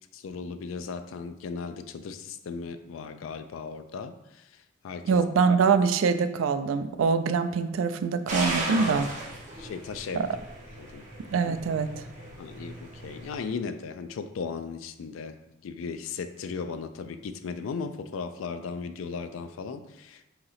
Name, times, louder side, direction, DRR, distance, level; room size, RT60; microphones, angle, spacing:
voice 1, 0.1-5.2 8.7-9.1 9.6-10.3 10.7-11.0 12.4-15.4 15.6-20.3, left 5 dB, 80° left, 10 dB, 0.3 m, -37 dB
voice 2, 5.1-9.1 10.1-10.3 11.3-11.9, right 5 dB, 80° right, 10 dB, 0.3 m, -24 dB
sound 1, 8.3-13.5, right 1 dB, 40° right, 0.9 m, -36 dB
3.7 x 2.9 x 4.1 m, 0.91 s
head